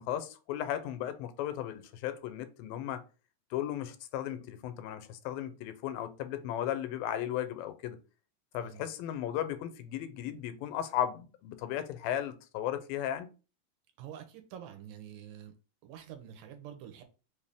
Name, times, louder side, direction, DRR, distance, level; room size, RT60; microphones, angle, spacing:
voice 1, 0.0-3.0 3.5-8.0 8.5-13.3, left 11 dB, 90° left, 2.3 m, -35 dB
voice 2, 14.0-15.5 15.8-17.0, right 10 dB, 80° right, 2.2 m, -47 dB
5.2 x 2.6 x 3.4 m
omnidirectional pair, 4.0 m